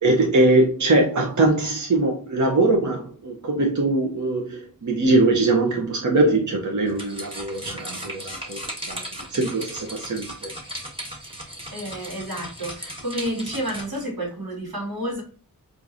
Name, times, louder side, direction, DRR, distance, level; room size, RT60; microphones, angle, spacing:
voice 1, 0.0-9.0 9.3-10.5, right 2 dB, 55° right, 0.7 m, -21 dB
sound 1, 6.9-14.0, right 1 dB, 15° right, 1.2 m, -36 dB
voice 2, 11.7-15.2, right 1 dB, 85° right, 1.5 m, -30 dB
4.5 x 2.5 x 2.5 m
wide cardioid pair, 60°, 35 cm